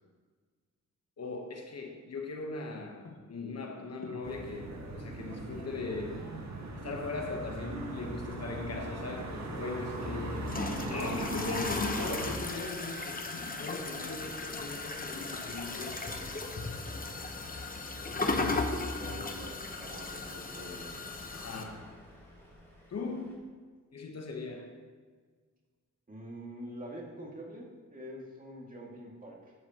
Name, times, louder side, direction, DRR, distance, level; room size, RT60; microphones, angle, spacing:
voice 1, 1.2-6.3 6.7-16.4 21.3-22.0 22.9-23.5 23.9-24.8, left 3 dB, 55° left, 1.1 m, -39 dB
sound 1, 4.2-12.3, right 2 dB, 60° right, 1.5 m, -39 dB
sound 2, 9.9-21.6, left 3 dB, 25° left, 0.9 m, -37 dB
Truck, 12.2-23.4, left 1 dB, 5° left, 3.0 m, -53 dB
voice 2, 18.1-20.9 26.1-29.5, right 1 dB, 25° right, 2.2 m, -44 dB
12.5 x 8.5 x 3.0 m
wide cardioid pair, 105°, 32 cm